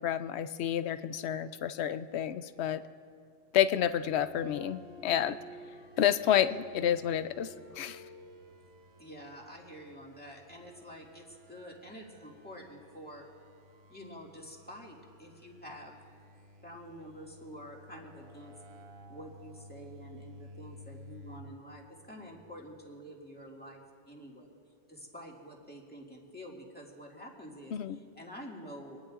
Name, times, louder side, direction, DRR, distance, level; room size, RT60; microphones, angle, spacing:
voice 1, 0.0-2.8 3.5-5.4 6.0-8.0 27.7-28.0, left 10 dB, 70° left, 12 dB, 0.8 m, -29 dB
sound 1, 3.8-21.4, equal, 60° right, 1.3 m, -53 dB
voice 2, 9.0-13.3 13.9-15.9 16.6-18.5 19.1-24.5 24.9-29.0, equal, 10° left, -2 dB, 2.1 m, -48 dB
25.0 x 19.5 x 2.5 m, 2.4 s
omnidirectional pair, 1.2 m